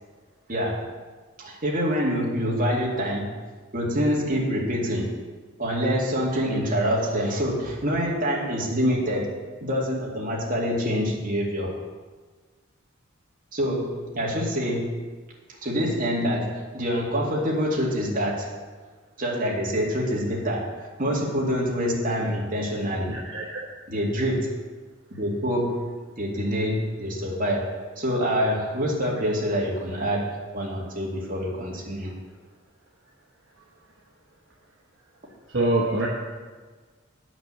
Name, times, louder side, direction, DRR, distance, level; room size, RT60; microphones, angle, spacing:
voice 1, 0.5-0.8 1.4-3.3 3.7-5.1 5.6-11.7 13.5-15.0 15.6-18.5 19.2-23.2 23.9-24.5 25.1-25.9 26.2-27.7 28.0-32.1, equal, 40° right, -3 dB, 2.2 m, -26 dB
voice 2, 23.1-23.6 35.5-36.1, right 2 dB, 60° right, -4 dB, 1.2 m, -25 dB
9.2 x 6.1 x 6.9 m, 1.4 s
head